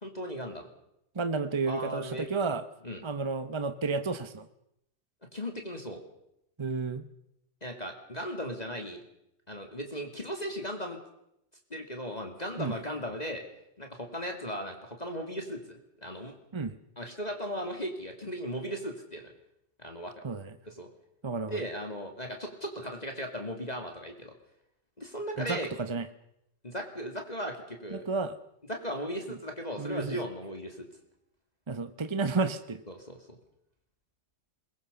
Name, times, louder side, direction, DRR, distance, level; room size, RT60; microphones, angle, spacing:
voice 1, 0.0-0.7 1.7-2.3 2.8-3.0 5.3-6.0 7.6-9.0 9.5-11.0 11.7-13.4 13.8-16.3 17.0-19.3 19.8-20.1 20.7-20.9 21.4-24.3 25.0-25.7 26.6-28.1 28.7-30.9 32.9-33.4, equal, 20° left, 3 dB, 2.6 m, -37 dB
voice 2, 1.1-2.6 3.0-4.5 6.6-7.0 12.6-12.7 16.5-16.8 20.2-20.5 21.2-21.6 25.4-25.6 25.9-26.0 27.9-28.3 29.8-30.2 31.7-32.8, right 4 dB, 30° right, 11 dB, 0.5 m, -31 dB
22.5 x 20.5 x 6.9 m, 0.81 s
omnidirectional pair, 1.9 m